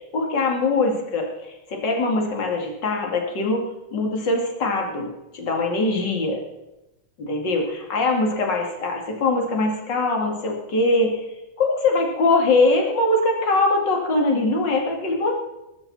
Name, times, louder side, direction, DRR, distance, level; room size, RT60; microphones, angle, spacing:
voice 1, 0.0-3.7 3.9-6.4 7.2-11.3 11.6-15.3, left 2 dB, 65° left, 1 dB, 3.0 m, -22 dB
19.0 x 13.0 x 4.2 m, 0.94 s
omnidirectional pair, 2.1 m